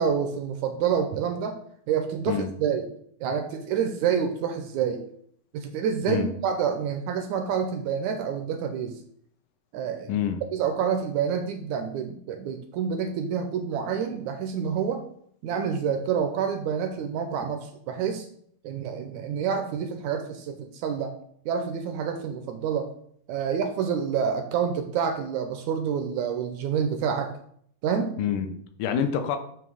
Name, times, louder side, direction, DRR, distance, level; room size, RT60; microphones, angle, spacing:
voice 1, 0.0-1.6 1.9-2.9 3.2-5.0 5.5-9.0 9.7-10.2 10.5-15.0 15.4-18.3 18.6-21.1 21.4-22.9 23.3-27.3 27.8-28.2, right 7 dB, 80° right, 6 dB, 1.7 m, -28 dB
voice 2, 10.1-10.4 28.2-29.4, left 8 dB, 75° left, 7 dB, 2.1 m, -27 dB
9.1 x 3.1 x 6.3 m, 0.66 s
omnidirectional pair, 4.0 m